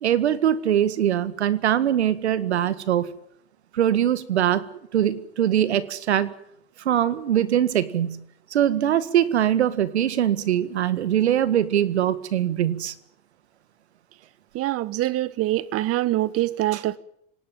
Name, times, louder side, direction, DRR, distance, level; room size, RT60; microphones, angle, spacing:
voice 1, 0.0-3.1 3.7-4.7 4.9-6.3 6.9-8.2 8.5-12.9 16.7-16.8, right 10 dB, 85° right, 1.9 m, -22 dB
voice 2, 14.5-17.0, right 16 dB, 45° right, 1.4 m, -24 dB
26.0 x 18.5 x 9.2 m
hypercardioid pair, 85°, 32 cm